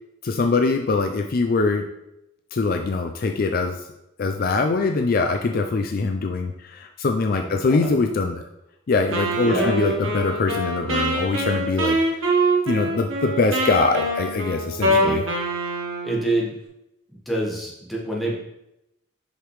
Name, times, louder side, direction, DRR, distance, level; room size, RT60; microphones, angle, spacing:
voice 1, 0.2-1.8 2.5-3.8 4.2-8.4 8.9-12.4 12.7-15.2, left 3 dB, 45° left, 5 dB, 0.4 m, -23 dB
voice 2, 7.4-7.9 9.4-9.8 14.8-15.1 16.0-16.5 17.1-18.3, right 1 dB, ahead, -4 dB, 1.2 m, -27 dB
Wind instrument woodwind instrument, 9.1-16.2, right 1 dB, 80° right, 1.2 m, -24 dB
6.5 x 5.0 x 3.1 m, 0.86 s
head